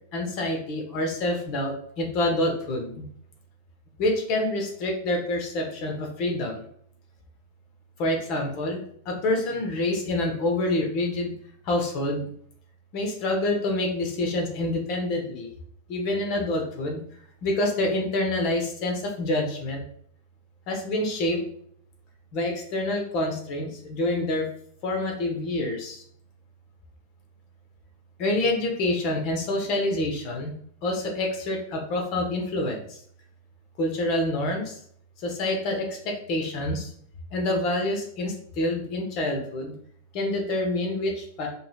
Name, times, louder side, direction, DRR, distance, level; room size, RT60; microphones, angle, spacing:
voice 1, 0.1-3.0 4.0-6.6 8.0-8.8 9.1-11.3 11.7-12.2 12.9-15.5 15.9-17.0 17.4-19.8 20.7-21.4 22.3-24.5 24.8-26.0 28.2-30.5 30.8-32.8 33.8-34.7 35.2-36.9 37.3-39.7 40.1-41.5, left 1 dB, 40° left, 2 dB, 1.1 m, -27 dB
5.2 x 3.2 x 2.3 m, 0.64 s
figure-of-eight pair, 90°, 0 cm